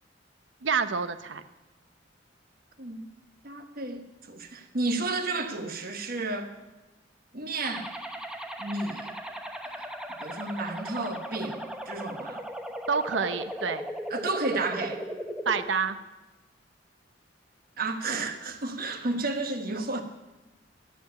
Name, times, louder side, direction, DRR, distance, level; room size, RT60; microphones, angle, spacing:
voice 1, 0.6-1.4 12.9-13.9 15.5-16.0, right 5 dB, 80° right, 11 dB, 0.8 m, -28 dB
voice 2, 3.4-6.6 7.3-7.9 8.6-9.1 9.7-9.9 10.2-12.4 14.1-15.0 17.8-20.0, right 2 dB, 55° right, 6 dB, 1.4 m, -32 dB
sound 1, 7.6-15.6, equal, 5° right, 1.0 m, -37 dB
13.5 x 7.0 x 9.4 m, 1.1 s
head